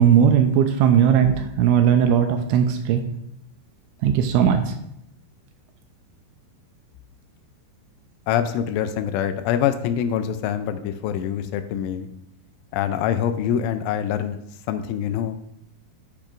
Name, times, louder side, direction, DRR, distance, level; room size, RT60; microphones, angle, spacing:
voice 1, 0.0-3.0 4.0-4.7, right 8 dB, 85° right, 6 dB, 2.8 m, -18 dB
voice 2, 8.3-12.1 12.7-14.4 14.7-15.4, left 9 dB, 85° left, 9 dB, 2.9 m, -25 dB
10.5 x 8.7 x 2.5 m, 0.77 s
omnidirectional pair, 5.7 m